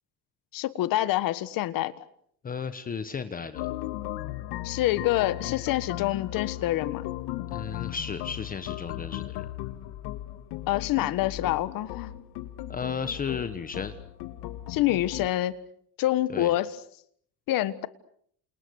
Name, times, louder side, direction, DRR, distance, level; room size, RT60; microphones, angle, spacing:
voice 1, 0.5-1.9 4.6-7.1 10.7-12.1 14.7-15.6 16.0-16.7 17.5-17.9, left 15 dB, 60° left, 15 dB, 1.6 m, -26 dB
voice 2, 2.4-3.7 7.5-9.5 12.7-13.9 16.3-16.5, left 6 dB, 20° left, 10 dB, 1.2 m, -34 dB
sound 1, 3.5-15.3, left 15 dB, 80° left, 1.8 m, -36 dB
28.5 x 28.5 x 6.5 m, 0.65 s
cardioid pair, 165°, 39 cm